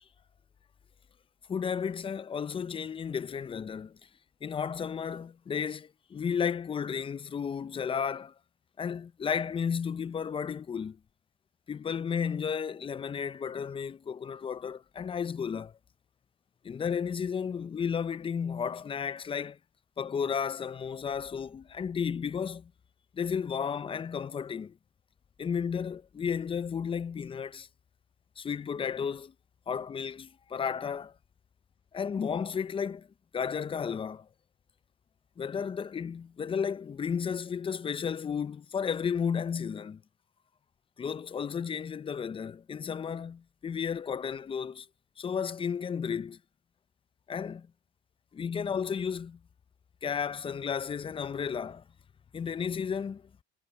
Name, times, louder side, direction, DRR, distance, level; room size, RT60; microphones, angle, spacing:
voice 1, 1.5-4.0 4.4-8.3 8.8-11.0 11.7-15.7 16.6-19.6 20.0-22.7 23.1-24.8 25.4-27.7 28.4-29.3 29.7-31.1 31.9-33.1 33.3-34.3 35.4-40.0 41.0-44.9 45.2-46.4 47.3-47.7 48.3-49.4 50.0-51.8 52.3-53.2, left 7 dB, 25° left, 0.7 m, -33 dB
supercardioid pair, 95°, 21 cm